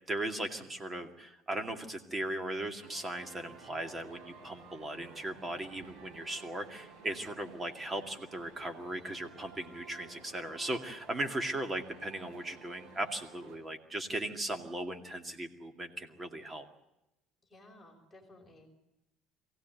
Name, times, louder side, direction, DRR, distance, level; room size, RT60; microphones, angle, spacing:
voice 1, 0.1-16.6, right 1 dB, 15° right, 6 dB, 2.3 m, -38 dB
sound 1, 2.8-13.6, right 4 dB, 60° right, 7.9 m, -54 dB
voice 2, 17.5-18.7, left 1 dB, 5° left, 0 dB, 5.0 m, -56 dB
23.0 x 17.0 x 9.2 m, 0.91 s
cardioid pair, 145°, 0 cm